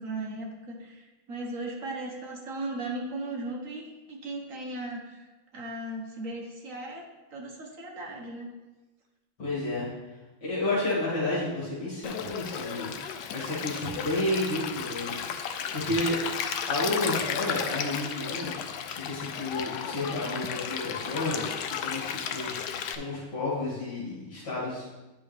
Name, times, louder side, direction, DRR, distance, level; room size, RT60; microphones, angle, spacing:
voice 1, 0.0-5.3 5.5-8.5, right 2 dB, 45° right, -1 dB, 1.3 m, -37 dB
voice 2, 9.4-9.9 10.4-16.1 16.7-18.5 18.9-21.5 21.8-22.6 22.9-24.8, left 2 dB, 55° left, -9 dB, 3.0 m, -31 dB
Stream, 12.0-23.0, left 8 dB, 75° left, 1.0 m, -34 dB
9.8 x 5.5 x 3.4 m, 1.1 s
omnidirectional pair, 2.3 m